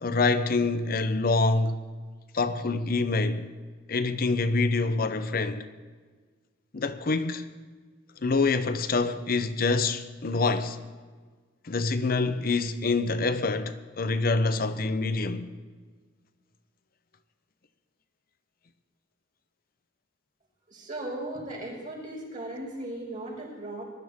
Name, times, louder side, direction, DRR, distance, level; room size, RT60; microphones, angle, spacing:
voice 1, 0.0-1.8 2.3-3.5 3.9-5.7 6.7-7.5 8.2-10.8 11.6-15.5, left 3 dB, 50° left, 0.7 m, -26 dB
voice 2, 20.7-23.8, right 1 dB, 40° right, 5.5 m, -37 dB
20.5 x 12.0 x 3.6 m
head